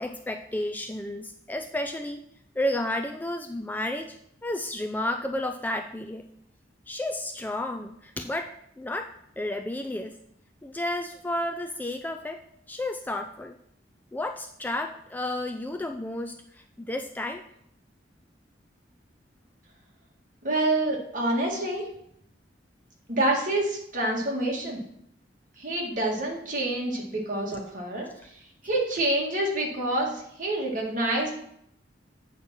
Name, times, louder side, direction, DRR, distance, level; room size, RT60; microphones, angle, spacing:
voice 1, 0.0-2.2 2.6-4.2 4.4-6.2 6.9-10.2 10.6-12.4 12.7-13.5 14.1-16.4 16.8-17.4, left 1 dB, 10° left, 6 dB, 0.3 m, -32 dB
voice 2, 20.4-21.9 23.1-24.8 25.6-28.1 28.6-31.3, right 1 dB, 45° right, -2 dB, 1.9 m, -27 dB
8.6 x 4.1 x 6.0 m, 0.72 s
head